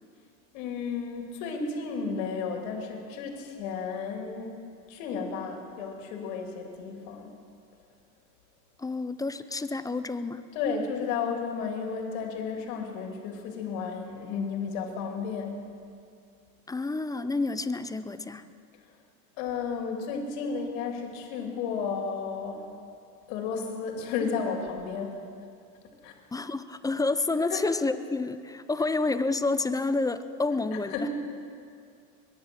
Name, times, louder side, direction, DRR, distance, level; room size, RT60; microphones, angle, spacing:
voice 1, 0.5-4.6 4.9-7.4 10.5-15.7 19.4-22.7 23.3-25.2 26.0-26.1 27.5-27.6 30.9-31.1, left 5 dB, 70° left, 2 dB, 3.0 m, -33 dB
voice 2, 8.8-10.4 16.7-18.5 26.3-31.1, left 3 dB, 10° left, 12 dB, 0.4 m, -29 dB
22.5 x 10.5 x 6.2 m, 2.4 s
supercardioid pair, 105°, 42 cm